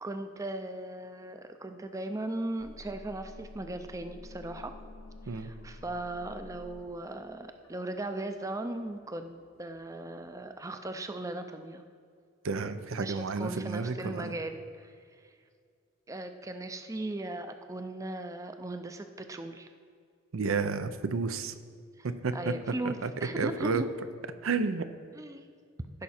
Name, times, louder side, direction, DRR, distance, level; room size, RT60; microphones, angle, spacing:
voice 1, 0.0-4.8 5.2-11.8 13.0-14.9 15.2-15.3 16.1-19.7 22.0-23.9 25.1-25.5, right 1 dB, 15° right, 8 dB, 0.4 m, -38 dB
sound 1, 2.6-10.5, left 2 dB, 85° left, 0.9 m, -51 dB
voice 2, 12.4-14.3 20.3-21.5 22.0-22.5 22.8-23.1 23.4-23.8 24.4-24.9, right 4 dB, 85° right, 11 dB, 0.6 m, -31 dB
15.5 x 5.8 x 4.3 m, 2.2 s
head